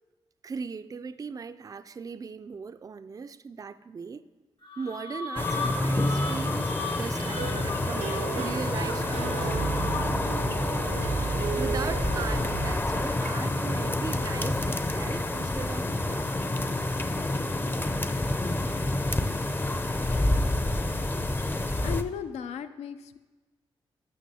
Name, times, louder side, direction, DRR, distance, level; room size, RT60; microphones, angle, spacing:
voice 1, 0.4-4.3 4.8-9.5 11.6-16.4, right 5 dB, 30° right, 0.4 m, -38 dB
sound 1, 4.6-10.3, left 3 dB, 45° left, 1.0 m, -37 dB
sound 2, 5.4-22.0, left 2 dB, 20° left, 0.5 m, -28 dB
sound 3, 7.4-12.8, right 4 dB, 80° right, 0.7 m, -33 dB
voice 2, 21.8-23.2, left 7 dB, 75° left, 0.5 m, -35 dB
12.5 x 5.9 x 2.8 m
supercardioid pair, 45°, 11 cm